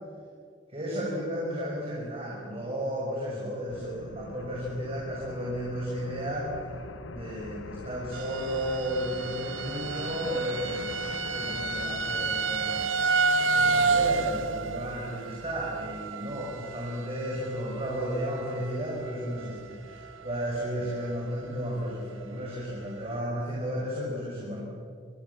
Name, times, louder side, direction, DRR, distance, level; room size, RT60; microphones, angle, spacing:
voice 1, 0.7-6.6 7.1-12.9 13.5-24.6, equal, 30° right, -4 dB, 6.1 m, -33 dB
sound 1, 3.7-12.9, left 3 dB, 85° left, 1.0 m, -43 dB
sound 2, 8.1-18.8 19.1-19.6 20.1-20.2 20.5-20.6, right 4 dB, 90° right, 1.5 m, -30 dB
28.0 x 22.0 x 7.3 m, 2.3 s
head